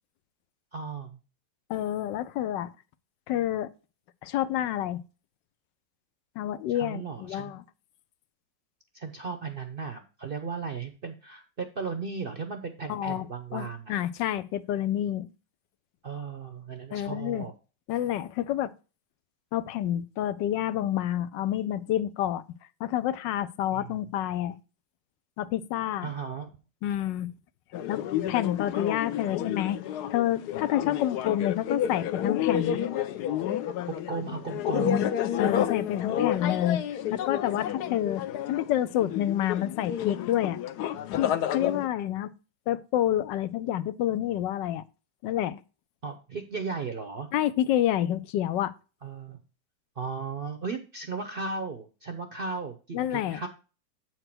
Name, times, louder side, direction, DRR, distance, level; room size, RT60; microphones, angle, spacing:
voice 1, 0.7-1.2 6.7-7.5 8.9-14.0 16.0-17.5 23.7-23.9 26.0-26.5 33.9-35.1 46.0-47.3 49.0-49.4 50.0-53.5, right 5 dB, 55° right, 0.6 m, -36 dB
voice 2, 1.7-2.7 3.3-3.7 4.2-5.0 6.4-7.6 12.9-13.3 13.5-15.3 16.9-17.5 17.9-18.7 19.5-22.4 22.8-24.6 25.4-26.1 26.8-27.3 27.9-29.8 30.1-32.8 35.4-40.6 41.1-42.3 42.7-44.8 45.2-45.6 47.3-48.7 52.9-53.4, left 12 dB, 90° left, 1.3 m, -28 dB
sound 1, 27.7-41.9, left 10 dB, 70° left, 1.1 m, -30 dB
7.9 x 4.6 x 5.9 m
omnidirectional pair, 1.9 m